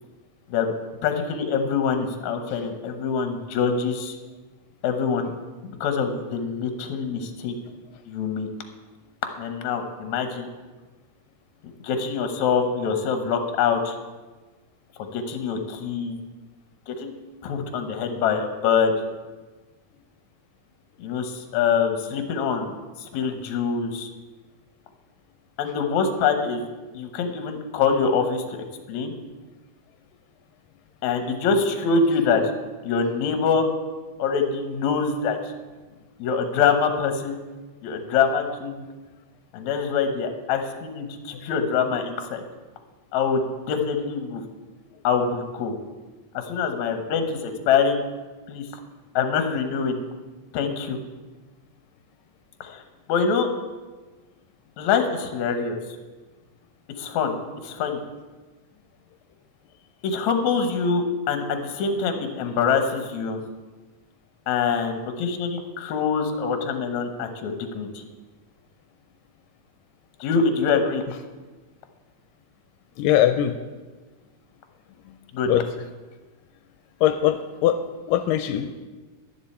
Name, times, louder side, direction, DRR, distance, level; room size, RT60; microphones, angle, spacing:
voice 1, 1.0-4.2 4.8-5.3 5.6-7.6 8.1-8.5 9.4-10.5 11.8-14.0 15.1-16.2 16.9-17.1 17.4-19.0 21.0-22.7 23.1-24.1 25.6-26.6 26.9-28.4 28.9-29.1 31.0-32.4 32.8-33.7 34.2-35.4 36.2-37.4 37.8-38.9 39.5-42.4 43.1-44.4 45.0-45.8 46.3-48.0 48.5-48.6 49.1-50.0 50.5-51.0 52.6-52.8 53.1-53.5 54.8-55.8 57.0-57.4 57.7-58.0 60.0-63.4 64.5-68.0 70.2-71.0 75.3-75.5, left 5 dB, 65° left, 6 dB, 2.2 m, -24 dB
voice 2, 73.0-73.6 75.5-75.7 77.0-78.8, left 11 dB, 85° left, 8 dB, 2.2 m, -21 dB
12.0 x 10.5 x 4.3 m, 1.3 s
omnidirectional pair, 3.9 m